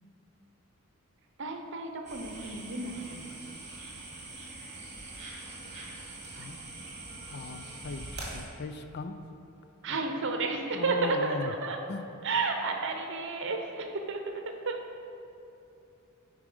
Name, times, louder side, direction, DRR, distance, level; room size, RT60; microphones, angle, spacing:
voice 1, 1.4-3.4 6.3-6.5 9.8-11.8 12.2-14.8, right 3 dB, 60° right, 4 dB, 0.8 m, -32 dB
sound 1, 2.1-8.5, right 2 dB, 30° right, 1.6 m, -43 dB
voice 2, 7.3-9.2 10.7-11.5 11.9-12.0, left 3 dB, 50° left, 8 dB, 0.5 m, -38 dB
9.0 x 4.8 x 5.0 m, 2.8 s
head